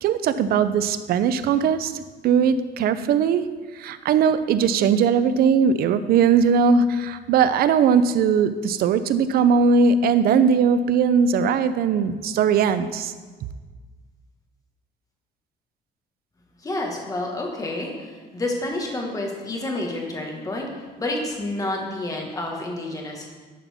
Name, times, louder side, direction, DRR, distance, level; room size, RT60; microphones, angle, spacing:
voice 1, 0.0-13.1, right 6 dB, 65° right, 12 dB, 0.5 m, -20 dB
voice 2, 16.6-23.3, left 2 dB, 20° left, 0 dB, 1.6 m, -29 dB
11.0 x 5.8 x 3.5 m, 1.4 s
cardioid pair, 110°, 17 cm